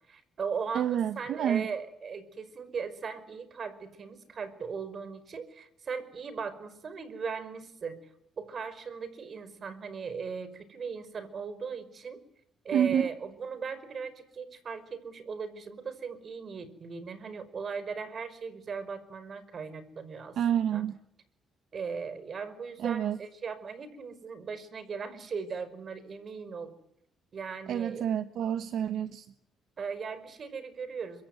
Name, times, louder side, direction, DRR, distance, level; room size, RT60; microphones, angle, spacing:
voice 1, 0.1-8.0 8.4-12.2 12.6-20.4 20.7-20.8 21.7-26.7 27.3-28.1 29.8-31.3, right 5 dB, 50° right, 14 dB, 5.3 m, -38 dB
voice 2, 0.7-1.6 12.7-13.1 20.4-21.0 22.8-23.2 27.7-29.3, right 9 dB, 70° right, 11 dB, 1.2 m, -28 dB
26.5 x 24.5 x 9.3 m, 0.73 s
cardioid pair, 90°, 0 cm